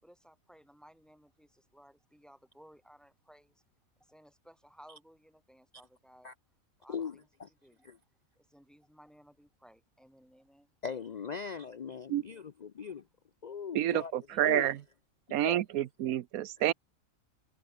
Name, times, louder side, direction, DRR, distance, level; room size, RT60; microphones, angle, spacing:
voice 1, 0.0-3.6 4.0-6.3 6.8-7.3 7.6-7.9 8.4-10.7 12.8-12.9 14.3-14.8, equal, ahead, 5.7 m, -59 dB
voice 2, 6.9-7.5 7.8-8.0 10.8-13.1 13.4-14.1 14.4-14.7 15.3-15.6, left 6 dB, 65° left, 0.4 m, -40 dB
voice 3, 13.7-14.8 15.3-16.7, right 12 dB, 85° right, 1.2 m, -29 dB
omnidirectional pair, 1.5 m